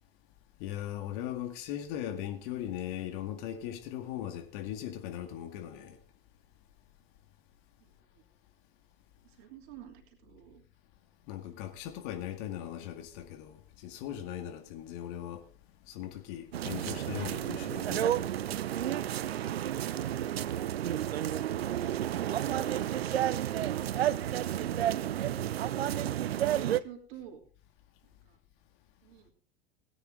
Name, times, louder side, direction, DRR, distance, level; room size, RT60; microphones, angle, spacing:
voice 1, 0.6-6.0 11.3-15.4 15.9-18.4 20.1-20.2, left 11 dB, 55° left, 2.0 m, -39 dB
voice 2, 7.8-8.2 9.2-10.6 22.4-25.4 25.7-27.4 28.0-28.4 29.0-29.3, right 11 dB, 55° right, 3.2 m, -47 dB
sound 1, 16.5-26.8, right 11 dB, 75° right, 0.5 m, -31 dB
17.5 x 9.8 x 3.8 m
figure-of-eight pair, 75°, 31 cm